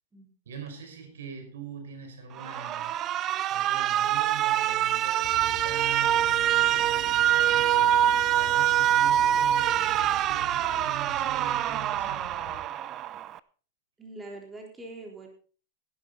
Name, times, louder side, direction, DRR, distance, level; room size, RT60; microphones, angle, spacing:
voice 1, 0.5-3.2 3.5-12.3, right 6 dB, 90° right, 5 dB, 5.4 m, -43 dB
Alarm, 2.4-13.4, right 11 dB, 35° right, 0.6 m, -25 dB
sound 1, 5.2-12.6, left 5 dB, 50° left, 4.4 m, -45 dB
voice 2, 14.0-15.3, right 2 dB, 15° right, 1 dB, 4.0 m, -43 dB
16.0 x 11.5 x 4.1 m, 0.40 s
supercardioid pair, 135°, 0 cm